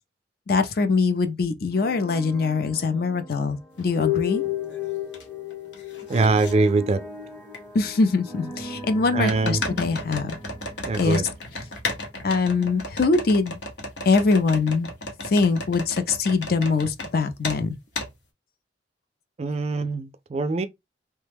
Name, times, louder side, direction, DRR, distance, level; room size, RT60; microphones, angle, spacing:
voice 1, 0.5-4.4 7.7-10.4 11.0-11.2 12.2-13.6 14.0-14.9 15.2-17.8, left 4 dB, 60° left, 0.5 m, -23 dB
sound 1, 1.7-11.8, left 8 dB, 15° left, 1.0 m, -34 dB
sound 2, 3.8-3.9 4.4-5.2 5.5-6.5 7.5-7.6 9.3-17.1 17.4-17.6 17.9-18.1, left 2 dB, 85° left, 0.9 m, -34 dB
voice 2, 6.1-7.0 9.1-9.6 10.9-11.2 19.4-20.7, right 3 dB, 35° right, 0.3 m, -23 dB
3.2 x 2.2 x 3.3 m
head